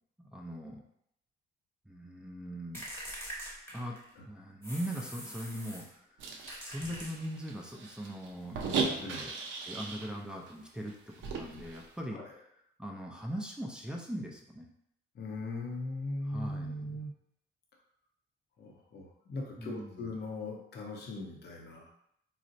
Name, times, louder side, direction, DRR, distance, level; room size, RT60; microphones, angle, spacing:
voice 1, 0.3-0.8 1.9-2.8 3.7-4.0 4.3-6.2 6.6-8.6 8.9-9.3 9.6-12.4 12.8-14.7 16.3-17.0 19.6-20.1, equal, 5° right, -1 dB, 0.5 m, -40 dB
sound 1, 2.7-4.2 4.6-5.9 6.5-7.6, equal, 10° left, 1.0 m, -44 dB
sound 2, 6.2-10.1 10.5-10.6 10.9-11.9, right 4 dB, 75° right, 0.6 m, -37 dB
voice 2, 9.0-9.5 12.1-12.3 15.1-17.1 18.6-21.9, left 2 dB, 55° left, 0 dB, 0.7 m, -40 dB
4.0 x 2.0 x 2.6 m, 0.74 s
cardioid pair, 90°, 20 cm